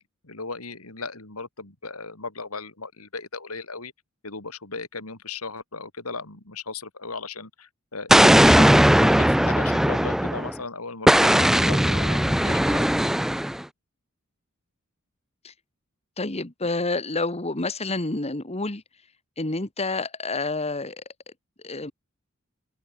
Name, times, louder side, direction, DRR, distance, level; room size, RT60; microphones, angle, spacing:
voice 1, 0.0-3.9 4.2-12.9, left 4 dB, 90° left, 4.1 m, -37 dB
Explosion, 8.1-10.5 11.1-13.6, equal, ahead, 0.4 m, -18 dB
voice 2, 16.2-18.8 19.4-21.0 21.6-21.9, left 2 dB, 30° left, 1.9 m, -28 dB
open air
head